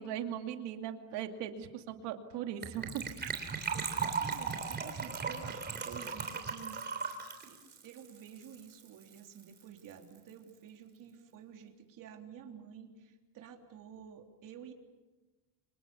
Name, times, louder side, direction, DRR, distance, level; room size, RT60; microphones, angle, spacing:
voice 1, 0.0-3.0, right 10 dB, 85° right, 5 dB, 2.6 m, -39 dB
Gurgling / Trickle dribble / Fill (with liquid), 2.6-8.9 9.1-9.2 9.4-9.6 9.9-10.0, right 5 dB, 25° right, 3.4 m, -37 dB
voice 2, 3.7-7.2 7.5-14.7, right 8 dB, 50° right, 3 dB, 3.5 m, -51 dB
29.5 x 25.5 x 7.1 m, 1.2 s
cardioid pair, 155°, 40 cm